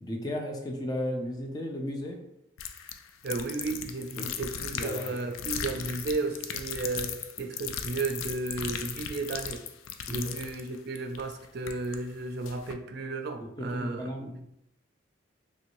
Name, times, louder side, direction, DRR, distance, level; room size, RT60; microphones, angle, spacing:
voice 1, 0.0-2.2 4.2-4.4 4.7-5.2 10.1-10.3 13.4-14.4, left 1 dB, 20° left, 1 dB, 0.4 m, -35 dB
sound 1, 2.6-12.0 12.4-12.8, left 8 dB, 90° left, 0.3 m, -37 dB
voice 2, 3.2-9.6 10.1-14.1, right 3 dB, 55° right, 6 dB, 0.4 m, -34 dB
3.1 x 2.7 x 3.0 m, 0.84 s
head